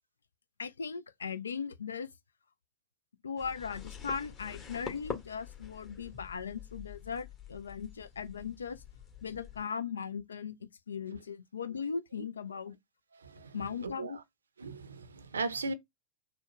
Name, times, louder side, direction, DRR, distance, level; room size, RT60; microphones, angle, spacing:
voice 1, 0.6-2.1 3.2-8.8 9.2-12.8 13.5-14.2, left 6 dB, 70° left, 0.4 m, -38 dB
sound 1, 3.4-9.7, left 6 dB, 30° left, 1.3 m, -46 dB
voice 2, 13.2-13.6 13.8-14.2 14.6-15.7, right 3 dB, 70° right, 0.5 m, -37 dB
4.2 x 2.1 x 2.9 m
figure-of-eight pair, 90°, 0 cm